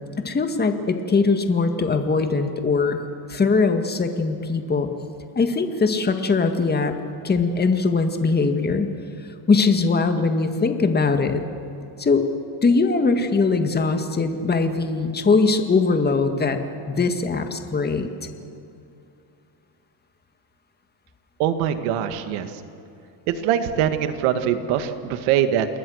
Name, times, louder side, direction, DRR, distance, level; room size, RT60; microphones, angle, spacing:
voice 1, 0.2-3.0 3.3-4.9 5.4-6.9 7.2-8.9 9.5-11.4 12.0-12.3 12.6-16.6 16.9-18.1, left 4 dB, 20° left, 6 dB, 1.8 m, -21 dB
voice 2, 21.4-22.5 23.3-25.7, right 10 dB, 80° right, 9 dB, 2.0 m, -22 dB
28.5 x 21.0 x 6.5 m, 2.7 s
cardioid pair, 125°, 50 cm